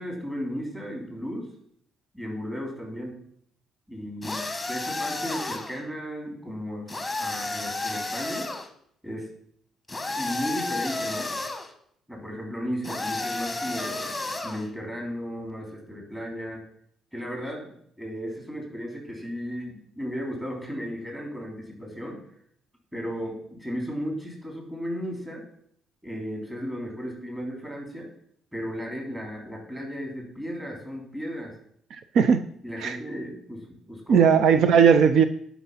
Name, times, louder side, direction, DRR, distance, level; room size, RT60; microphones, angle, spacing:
voice 1, 0.0-1.5 2.1-3.2 3.9-6.9 7.2-8.5 9.0-9.3 10.1-11.3 12.1-14.1 14.4-16.6 17.1-22.2 22.9-25.4 26.0-28.1 28.5-31.5 32.2-32.3 32.6-34.3, equal, 10° right, 0 dB, 3.7 m, -35 dB
sound 1, 4.2-5.8 6.9-8.7 9.9-11.7 12.8-14.7, left 2 dB, 10° left, 1.3 m, -31 dB
voice 2, 34.1-35.2, right 7 dB, 65° right, 11 dB, 0.6 m, -17 dB
11.5 x 6.0 x 5.7 m, 0.67 s
cardioid pair, 125°, 0 cm